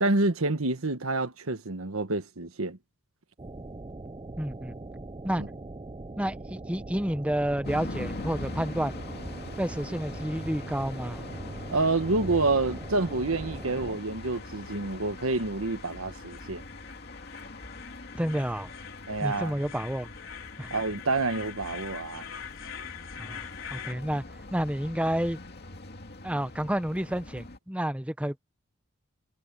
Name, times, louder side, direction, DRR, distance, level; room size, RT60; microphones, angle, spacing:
voice 1, 0.0-2.8 5.4-5.5 11.7-16.6 19.1-19.5 20.7-22.2, right 2 dB, 75° right, 1.4 m, -28 dB
sound 1, 3.4-14.0, right 2 dB, 25° right, 0.6 m, -41 dB
voice 2, 4.4-4.7 5.2-5.4 6.2-9.0 9.6-11.3 18.1-18.7 19.2-20.1 20.6-20.7 23.2-23.5 23.7-25.4 26.2-28.4, right 1 dB, 5° right, 0.9 m, -30 dB
sound 2, 7.6-27.6, left 2 dB, 50° left, 2.5 m, -42 dB
sound 3, 10.1-23.9, left 8 dB, 65° left, 4.7 m, -46 dB
head